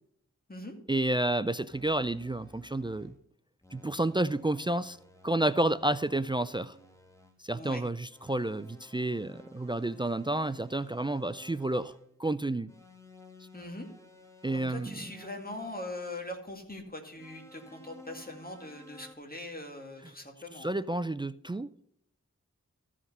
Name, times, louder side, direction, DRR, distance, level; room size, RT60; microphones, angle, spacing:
voice 1, 0.9-3.1 3.7-5.0 5.2-6.7 7.4-11.9 12.2-12.7 14.4-15.0 20.5-21.7, right 1 dB, 15° right, 0.3 m, -30 dB
sound 1, 1.7-3.2 3.6-7.4 8.1-12.1 12.7-16.3 17.2-19.1, left 2 dB, 10° left, 1.6 m, -55 dB
voice 2, 7.5-7.8 13.5-13.9 14.5-20.7, left 1 dB, 30° left, 2.1 m, -41 dB
14.0 x 5.0 x 5.5 m
wide cardioid pair, 55°, 31 cm